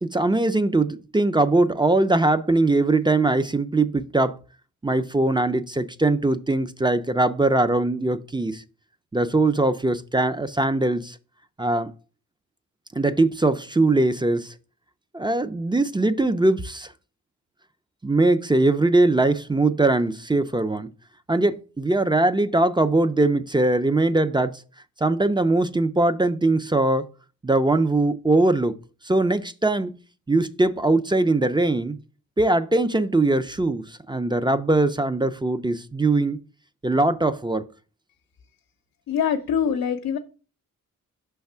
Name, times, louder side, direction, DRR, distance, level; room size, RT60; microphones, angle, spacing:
voice 1, 0.0-4.4 4.8-8.6 9.1-11.2 11.6-11.9 12.9-14.5 15.1-16.9 18.0-20.9 21.3-24.6 25.0-27.0 27.4-28.7 29.0-30.0 30.3-32.0 32.4-36.4 36.8-37.6, right 2 dB, 15° right, 0.5 m, -21 dB
voice 2, 39.1-40.2, left 7 dB, 85° left, 0.7 m, -24 dB
5.8 x 3.5 x 5.5 m
cardioid pair, 65°, 33 cm